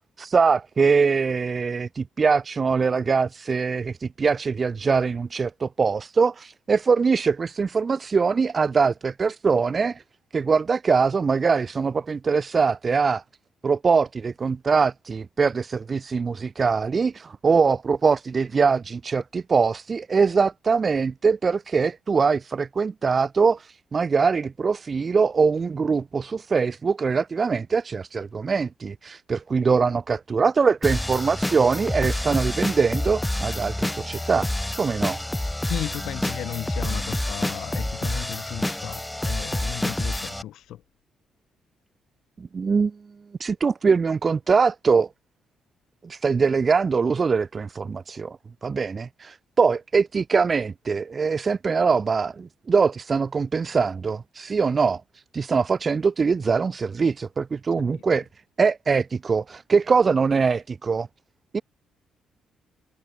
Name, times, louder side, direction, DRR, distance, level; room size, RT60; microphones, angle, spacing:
voice 1, 0.2-10.0 10.3-13.2 13.6-34.5 34.8-35.2 42.4-43.0 43.4-45.1 46.0-48.4 48.6-58.2 58.6-61.1 61.5-61.6, right 5 dB, 35° right, 0.9 m, -22 dB
sound 1, 30.8-40.4, left 1 dB, 10° left, 2.1 m, -28 dB
voice 2, 35.7-40.8 57.8-57.9, left 12 dB, 80° left, 3.2 m, -35 dB
cardioid pair, 90°, 0 cm